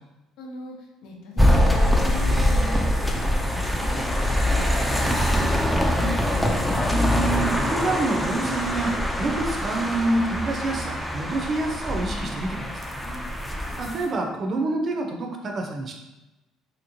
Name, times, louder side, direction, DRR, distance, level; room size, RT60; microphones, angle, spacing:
voice 1, 0.4-2.8 3.1-5.1 5.3-6.0 13.0-13.3, left 1 dB, 80° left, -1 dB, 0.7 m, -39 dB
sound 1, 1.4-14.1, left 1 dB, 5° left, 0.4 m, -23 dB
voice 2, 6.8-12.7 13.8-15.9, right 2 dB, 40° right, 3 dB, 0.6 m, -27 dB
3.2 x 2.9 x 2.6 m, 1.0 s
cardioid pair, 105°, 0 cm